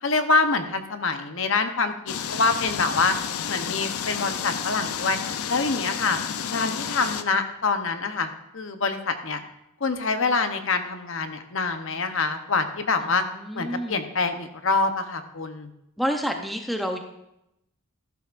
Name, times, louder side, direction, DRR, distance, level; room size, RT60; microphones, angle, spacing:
voice 1, 0.0-3.1 3.5-5.2 5.5-6.2 6.5-9.4 9.8-13.2 13.5-15.7, left 4 dB, 60° left, 7 dB, 0.9 m, -25 dB
sound 1, 2.1-7.2, left 8 dB, 85° left, 0.6 m, -31 dB
voice 2, 13.0-14.0 16.0-17.0, equal, ahead, 4 dB, 0.7 m, -29 dB
13.0 x 11.5 x 2.5 m, 0.84 s
head